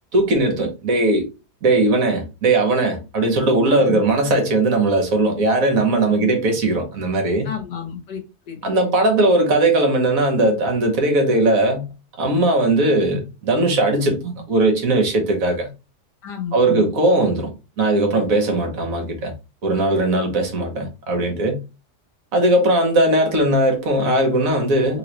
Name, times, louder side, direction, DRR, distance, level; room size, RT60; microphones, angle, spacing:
voice 1, 0.1-1.3 1.6-7.5 8.6-11.9 12.2-15.7 16.5-19.3 19.6-21.6 22.3-25.0, right 2 dB, 60° right, 1.4 m, -19 dB
voice 2, 3.7-4.0 6.1-6.3 7.4-8.2 8.5-8.9 16.2-16.9, left 8 dB, 85° left, 1.6 m, -31 dB
3.4 x 3.1 x 3.0 m
omnidirectional pair, 1.8 m